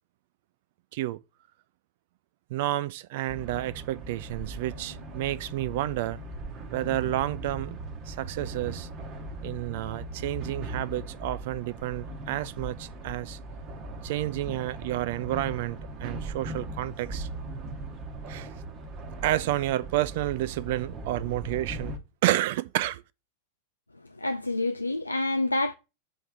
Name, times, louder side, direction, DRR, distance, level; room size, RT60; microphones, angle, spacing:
voice 1, 2.5-6.2 6.7-7.8 8.1-8.9 9.4-13.4 14.0-17.3 18.3-18.5 19.2-21.9 22.2-23.0, right 15 dB, 50° right, 0.4 m, -30 dB
sound 1, 3.3-22.0, right 2 dB, 35° right, 1.2 m, -39 dB
voice 2, 24.2-25.7, left 2 dB, 85° left, 0.3 m, -27 dB
7.6 x 3.4 x 6.3 m
figure-of-eight pair, 90°, 0 cm